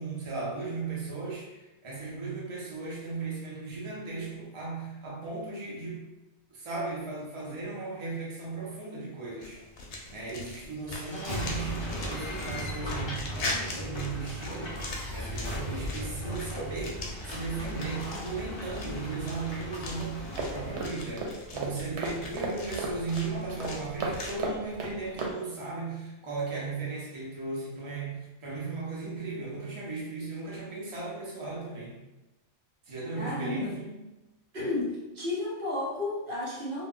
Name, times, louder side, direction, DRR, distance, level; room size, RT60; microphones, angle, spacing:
voice 1, 0.0-6.0 6.5-9.6 10.1-14.9 15.1-32.0 32.9-34.0, right 3 dB, 35° right, -5 dB, 0.6 m, -36 dB
HC Footsteps on Gravel Spaced Omni's, 9.4-24.4, left 2 dB, 65° left, 0.7 m, -41 dB
sound 1, 10.9-20.8, equal, 40° left, 0.4 m, -37 dB
sound 2, 20.4-25.3, right 3 dB, 85° right, 0.9 m, -35 dB
voice 2, 33.1-33.8 34.5-36.9, left 2 dB, 60° right, -6 dB, 0.9 m, -32 dB
2.1 x 2.1 x 3.6 m, 1.0 s
omnidirectional pair, 1.1 m